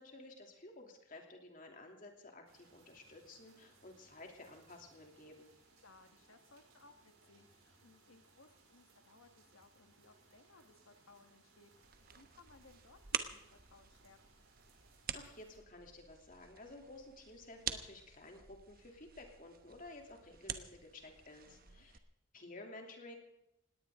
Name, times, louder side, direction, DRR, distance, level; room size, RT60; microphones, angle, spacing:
voice 1, 0.0-5.5 15.1-22.0 22.3-23.2, left 2 dB, 40° left, 2 dB, 3.0 m, -53 dB
sound 1, 2.5-15.6, right 3 dB, 85° right, 5.4 m, -67 dB
voice 2, 5.8-14.5 21.5-21.9, left 3 dB, 85° left, 7 dB, 1.7 m, -64 dB
sound 2, 11.8-22.0, right 8 dB, 45° right, 1.1 m, -47 dB
19.5 x 17.5 x 3.8 m, 0.85 s
head